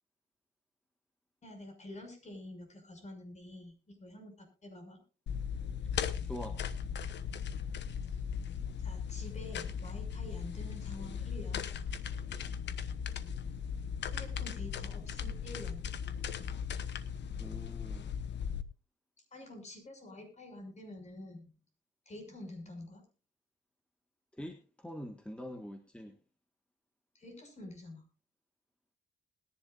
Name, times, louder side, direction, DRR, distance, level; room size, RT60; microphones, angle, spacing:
voice 1, 1.4-5.0 8.8-11.6 14.1-15.9 19.3-21.5 22.1-23.0 27.1-28.0, left 1 dB, 35° left, 4 dB, 6.2 m, -48 dB
sound 1, 5.3-18.6, left 7 dB, 65° left, 1.1 m, -38 dB
voice 2, 6.2-6.6 17.4-18.1 24.3-26.2, equal, 5° left, 4 dB, 1.5 m, -44 dB
20.5 x 11.0 x 2.5 m, 0.33 s
cardioid pair, 90°, 20 cm